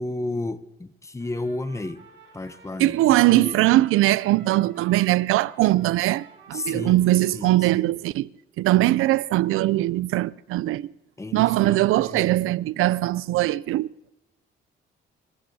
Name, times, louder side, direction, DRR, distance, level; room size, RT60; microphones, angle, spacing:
voice 1, 0.0-2.0 2.3-3.0 3.3-3.6 6.5-7.1 7.3-7.5 11.2-12.5, left 2 dB, 15° left, 0.7 m, -32 dB
Trumpet, 1.2-7.8, right 6 dB, 60° right, 2.6 m, -50 dB
voice 2, 2.8-8.3 8.6-10.9 11.3-13.9, right 16 dB, 90° right, 0.4 m, -21 dB
30.0 x 16.0 x 2.8 m
cardioid pair, 115°, 21 cm